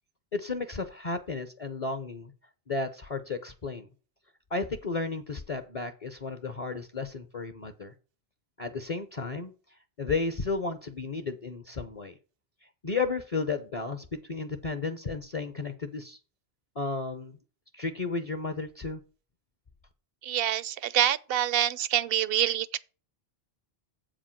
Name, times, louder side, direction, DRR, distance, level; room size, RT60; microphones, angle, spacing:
voice 1, 0.3-2.3 2.7-3.9 4.5-7.9 8.6-9.5 10.0-12.2 12.8-16.2 16.8-17.4 17.7-19.0, left 4 dB, 40° left, 0.7 m, -33 dB
voice 2, 20.2-22.8, right 11 dB, 65° right, 0.8 m, -26 dB
8.0 x 5.1 x 5.7 m
omnidirectional pair, 1.1 m